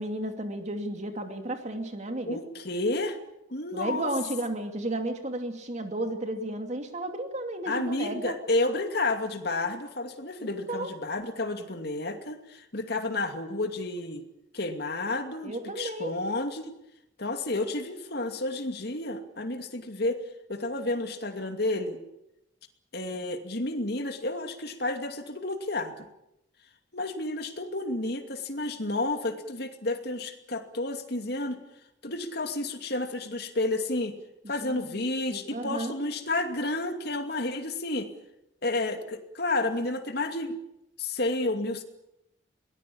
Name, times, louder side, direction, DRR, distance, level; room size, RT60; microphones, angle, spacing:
voice 1, 0.0-2.4 3.7-8.4 10.4-10.9 15.4-16.1 34.6-35.0 35.3-35.9, right 1 dB, 35° right, 5 dB, 2.6 m, -33 dB
voice 2, 2.2-3.2 3.5-4.1 7.7-14.2 14.5-16.7 17.2-20.2 20.5-22.0 22.9-25.9 26.9-31.6 32.0-34.1 34.5-38.1 38.6-40.6 41.0-41.8, left 2 dB, 55° left, 6 dB, 2.5 m, -31 dB
22.5 x 19.0 x 8.7 m, 0.86 s
head